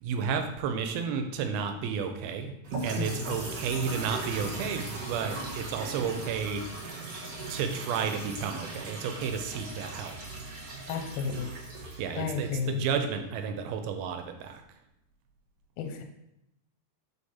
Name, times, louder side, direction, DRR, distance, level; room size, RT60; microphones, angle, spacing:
voice 1, 0.0-2.5 2.8-6.6 7.5-10.2 12.0-14.6, right 6 dB, 85° right, 6 dB, 2.5 m, -32 dB
sound 1, 2.6-12.8, right 2 dB, 60° right, 1.8 m, -39 dB
voice 2, 3.0-3.4 10.9-11.5 12.2-12.8 15.8-16.0, left 6 dB, 85° left, 4 dB, 2.4 m, -32 dB
5.1 x 5.1 x 4.1 m, 0.84 s
omnidirectional pair, 4.3 m